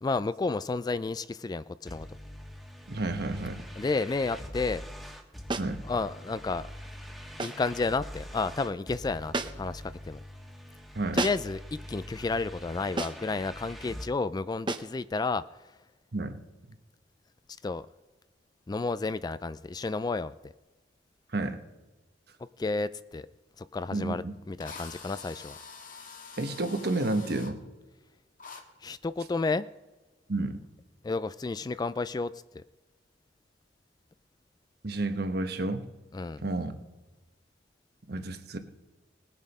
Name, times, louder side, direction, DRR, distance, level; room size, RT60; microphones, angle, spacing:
voice 1, 0.0-2.2 3.8-4.8 5.9-6.7 7.4-10.2 11.1-15.4 17.6-17.9 18.7-20.5 22.6-23.3 23.6-25.6 28.8-29.7 31.0-32.6 36.1-36.4, left 3 dB, 20° left, 15 dB, 0.3 m, -31 dB
sound 1, 1.9-14.1, equal, ahead, 1.4 m, -44 dB
voice 2, 2.9-3.6 5.6-5.8 10.9-11.2 16.1-16.4 21.3-21.6 23.9-24.3 26.4-27.6 30.3-30.6 34.8-35.9 36.4-36.7 38.1-38.6, right 2 dB, 60° right, 8 dB, 1.1 m, -31 dB
sound 2, 5.5-5.8 7.4-7.7 9.3-9.8 11.2-11.6 13.0-13.3 14.7-15.0, right 3 dB, 25° right, 0.7 m, -32 dB
Drill, 23.9-24.0 24.6-27.5 28.4-28.6, left 5 dB, 50° left, 1.5 m, -45 dB
19.5 x 7.2 x 5.4 m, 1.2 s
head